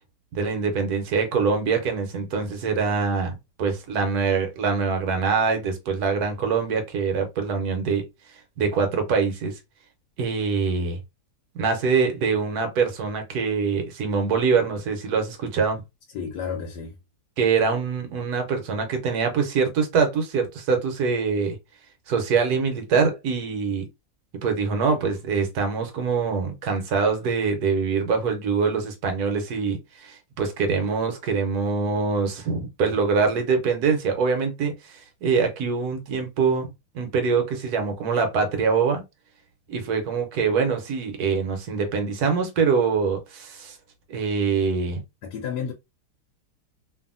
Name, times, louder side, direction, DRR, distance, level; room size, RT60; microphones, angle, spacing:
voice 1, 0.3-8.1 8.6-9.6 10.2-11.0 11.5-15.8 17.4-21.6 22.1-23.9 24.4-39.0 39.7-43.8 44.1-45.0, right 5 dB, 75° right, 1.3 m, -24 dB
voice 2, 16.1-17.0 45.2-45.7, left 6 dB, 90° left, 1.2 m, -31 dB
2.7 x 2.6 x 2.5 m
omnidirectional pair, 1.7 m